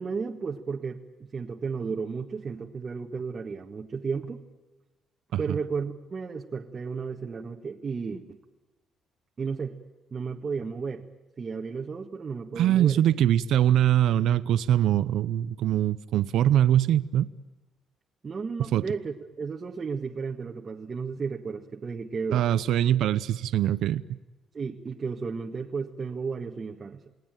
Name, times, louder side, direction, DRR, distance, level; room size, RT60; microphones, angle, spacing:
voice 1, 0.0-4.4 5.4-8.4 9.4-9.7 10.1-11.0 11.4-13.0 18.2-22.4 24.5-27.0, right 5 dB, 30° right, 1 dB, 1.6 m, -33 dB
voice 2, 12.6-17.3 18.7-18.8 22.3-24.2, right 11 dB, 75° right, 14 dB, 0.8 m, -23 dB
29.0 x 19.5 x 9.1 m, 1.2 s
cardioid pair, 135°, 0 cm